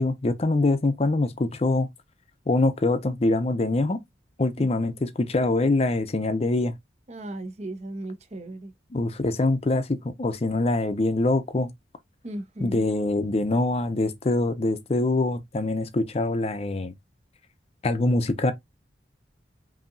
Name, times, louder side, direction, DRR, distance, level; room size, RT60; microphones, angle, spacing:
voice 1, 0.0-1.9 2.5-4.0 4.4-6.7 8.9-11.7 12.6-16.9 17.8-18.5, left 2 dB, 35° left, 0.5 m, -24 dB
voice 2, 7.1-8.7 12.2-12.9, right 1 dB, 40° right, 0.7 m, -36 dB
5.4 x 2.7 x 2.5 m
head